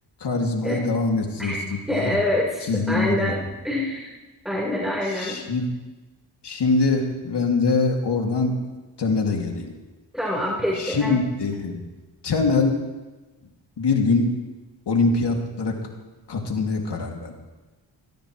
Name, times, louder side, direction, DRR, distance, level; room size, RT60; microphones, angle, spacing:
voice 1, 0.2-2.2 2.6-3.3 5.1-5.6 6.4-8.5 9.0-9.7 10.8-11.8 12.2-12.8 13.8-14.3 14.9-15.8 16.3-17.3, left 3 dB, 55° left, 1 dB, 2.8 m, -23 dB
voice 2, 1.9-4.1 4.4-5.4 10.1-11.1, left 1 dB, ahead, -4 dB, 4.6 m, -26 dB
19.5 x 17.5 x 3.3 m, 1.2 s
supercardioid pair, 55°, 48 cm